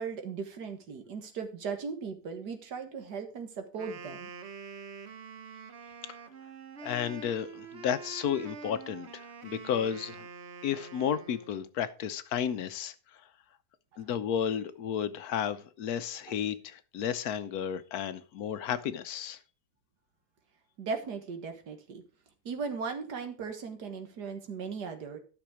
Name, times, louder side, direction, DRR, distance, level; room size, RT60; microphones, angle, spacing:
voice 1, 0.0-4.3 20.8-22.0 22.5-25.2, right 5 dB, 85° right, 2.0 m, -37 dB
Wind instrument woodwind instrument, 3.7-11.7, right 5 dB, 50° right, 1.0 m, -46 dB
voice 2, 6.8-10.3 10.6-13.2 14.0-19.4, left 8 dB, 70° left, 1.2 m, -33 dB
12.0 x 6.1 x 4.8 m
omnidirectional pair, 1.7 m